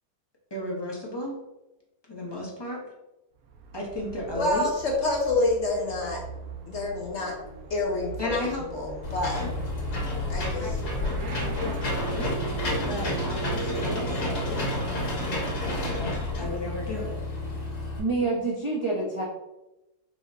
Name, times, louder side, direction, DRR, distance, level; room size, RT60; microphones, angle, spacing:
voice 1, 0.5-1.4 2.1-2.8 3.7-4.7 8.2-8.7 9.4-9.5 10.6-10.7 11.2-11.7 12.1-12.3 12.9-15.2 15.6-17.1, left 1 dB, 35° left, -3 dB, 0.4 m, -34 dB
Motorcycle / Accelerating revving vroom, 3.4-17.2, right 4 dB, 70° right, 0.9 m, -41 dB
voice 2, 4.3-6.2 6.7-7.3 7.7-8.4 8.7-9.4 10.3-10.7, left 2 dB, 60° left, 0 dB, 0.8 m, -27 dB
Engine / Mechanisms, 9.0-18.0, left 2 dB, 80° left, 1.7 m, -30 dB
sound 1, 10.8-16.0, right 5 dB, 85° right, 2.3 m, -39 dB
voice 3, 18.0-19.2, right 3 dB, 55° right, -6 dB, 0.3 m, -27 dB
4.8 x 2.0 x 3.9 m, 0.98 s
omnidirectional pair, 1.7 m